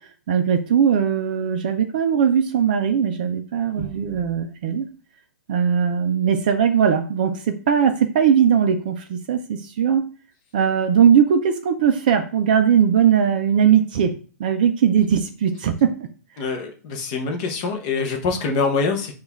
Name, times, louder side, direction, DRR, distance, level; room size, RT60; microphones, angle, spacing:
voice 1, 0.3-4.9 5.5-10.0 10.5-14.1 14.4-15.9, right 8 dB, 30° right, 6 dB, 0.4 m, -19 dB
voice 2, 16.4-19.1, left 4 dB, 25° left, 4 dB, 0.6 m, -24 dB
6.2 x 2.3 x 3.4 m, 0.39 s
hypercardioid pair, 175°, 9 cm